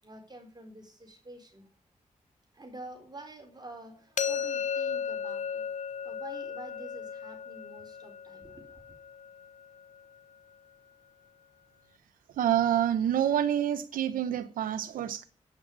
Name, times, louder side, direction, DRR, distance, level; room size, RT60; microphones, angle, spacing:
voice 1, 0.0-1.6 2.5-5.7 6.0-9.0, right 2 dB, 30° right, 4.4 m, -48 dB
sound 1, 4.2-10.0, left 7 dB, 60° left, 0.6 m, -35 dB
voice 2, 12.4-15.2, right 10 dB, 85° right, 0.8 m, -27 dB
9.0 x 8.4 x 8.5 m
supercardioid pair, 45°, 14 cm